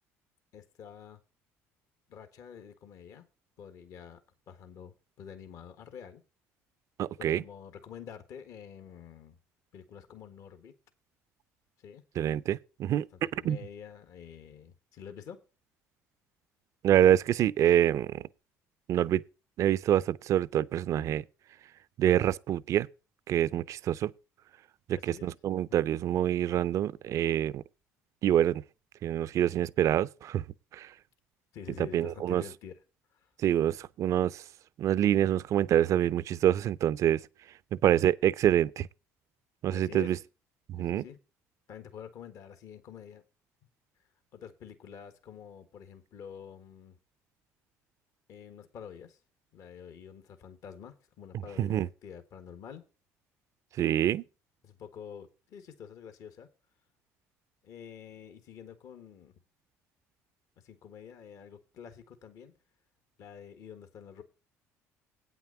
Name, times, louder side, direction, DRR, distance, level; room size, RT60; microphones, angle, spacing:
voice 1, 0.5-1.2 2.1-3.2 3.6-4.2 4.5-6.2 7.2-9.4 9.7-10.8 11.8-12.0 13.3-15.4 24.9-25.3 31.5-32.7 33.1-33.3 39.7-40.1 40.8-41.2 41.7-43.2 44.3-47.0 48.3-49.2 49.5-52.8 54.6-56.5 57.6-59.3 60.6-62.5 63.2-64.2, left 7 dB, 65° left, 1.5 m, -47 dB
voice 2, 7.0-7.4 12.2-13.1 13.4-13.6 16.8-18.3 18.9-19.2 19.6-21.2 22.0-22.9 23.3-24.1 24.9-27.6 28.2-28.6 29.0-30.4 30.7-30.9 31.8-32.4 33.4-34.4 34.8-37.2 37.7-38.9 39.6-40.2 40.7-41.0 51.6-51.9 53.8-54.2, right 11 dB, 55° right, 0.5 m, -26 dB
8.7 x 5.9 x 6.9 m
supercardioid pair, 80°, 6 cm